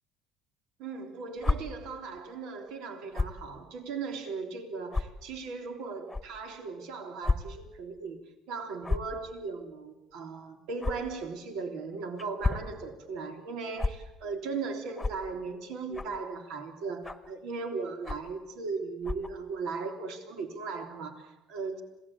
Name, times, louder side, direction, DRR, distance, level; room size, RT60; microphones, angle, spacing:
voice 1, 0.8-8.2 8.5-21.8, right 4 dB, 80° right, 5 dB, 3.4 m, -37 dB
sound 1, 1.4-1.6 3.1-3.4 4.1-4.2 4.9-5.0 6.1-6.2 7.2-7.4 7.7-7.8 8.8-9.1 10.8-10.9 12.2-12.7 13.8-13.9 15.0-15.2 15.9-16.2 17.0-17.3 18.0-18.3 19.0-19.3, left 3 dB, 10° left, 1.3 m, -29 dB
27.5 x 18.0 x 8.6 m, 0.94 s
cardioid pair, 140°, 0 cm